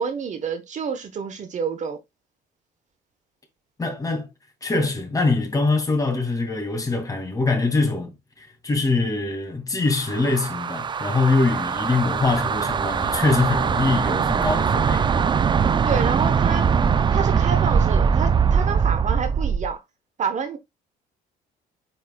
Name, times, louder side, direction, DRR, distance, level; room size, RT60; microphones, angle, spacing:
voice 1, 0.0-2.0 15.9-16.7 17.1-19.8 20.2-20.6, right 6 dB, 45° right, 1.3 m, -28 dB
voice 2, 3.8-4.3 4.6-8.1 8.4-15.1, left 3 dB, 20° left, 2.5 m, -23 dB
sound 1, 9.9-19.7, right 6 dB, 25° right, 0.4 m, -21 dB
9.1 x 4.6 x 2.4 m
cardioid pair, 110°, 17 cm